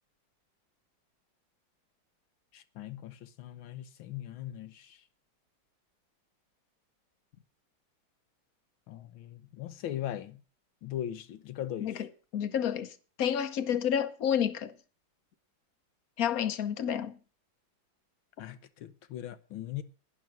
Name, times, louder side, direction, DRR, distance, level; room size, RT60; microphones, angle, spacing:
voice 1, 2.5-5.0 8.9-10.4 10.8-12.1 18.4-19.8, left 11 dB, 85° left, 1.7 m, -40 dB
voice 2, 11.8-14.7 16.2-17.2, left 9 dB, 55° left, 1.2 m, -30 dB
11.0 x 10.5 x 6.0 m
omnidirectional pair, 2.1 m